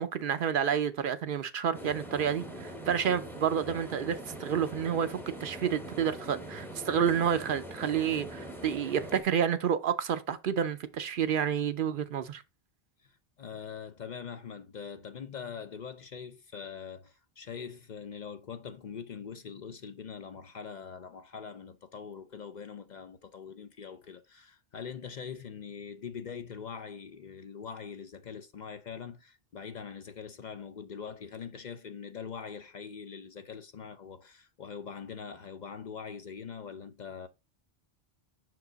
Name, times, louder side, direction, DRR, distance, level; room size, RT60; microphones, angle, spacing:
voice 1, 0.0-12.4, right 8 dB, 60° right, 0.7 m, -29 dB
sound 1, 1.7-9.2, right 1 dB, ahead, 0.7 m, -43 dB
voice 2, 13.0-37.3, left 6 dB, 55° left, 0.6 m, -43 dB
6.0 x 4.8 x 3.9 m
omnidirectional pair, 1.0 m